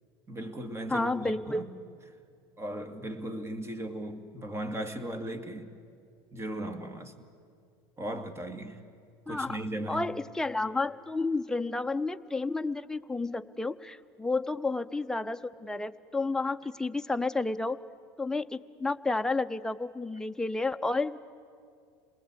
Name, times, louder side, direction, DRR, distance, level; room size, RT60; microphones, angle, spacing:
voice 1, 0.3-1.7 2.6-5.7 6.3-7.2 8.0-8.8 9.3-10.1, right 1 dB, 20° right, 2.1 m, -37 dB
voice 2, 0.9-1.6 9.3-17.8 18.2-21.2, left 3 dB, 5° left, 0.7 m, -31 dB
27.0 x 20.0 x 8.2 m
hypercardioid pair, 85°, 12 cm